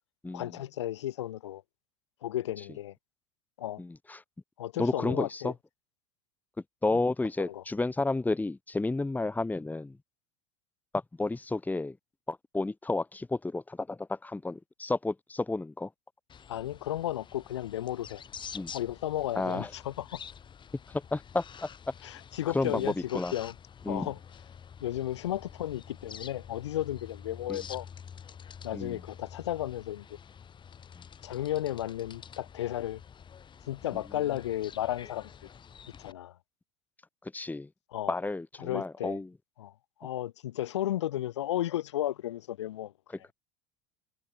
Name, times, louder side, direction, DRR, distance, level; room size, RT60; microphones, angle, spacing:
voice 1, 0.3-1.6 2.2-2.9 3.6-3.8 4.6-5.5 7.4-7.6 16.5-18.2 18.7-20.2 22.0-23.5 23.9-24.2 24.8-27.9 28.6-30.0 31.2-33.0 33.7-35.3 36.0-36.4 37.9-38.1 38.6-39.2 39.6-39.7 40.0-42.9, left 13 dB, 75° left, 6.5 m, -34 dB
voice 2, 3.8-4.2 4.8-5.5 6.8-10.0 10.9-12.0 12.3-15.9 18.5-18.7 19.4-19.7 20.9-21.7 22.5-22.9 23.1-23.3 23.9-24.1 27.5-27.6 28.7-29.0 37.3-37.7 38.1-39.3, left 2 dB, 10° left, 2.5 m, -31 dB
sound 1, 16.3-36.1, left 7 dB, 35° left, 7.3 m, -48 dB
figure-of-eight pair, 70°, 15 cm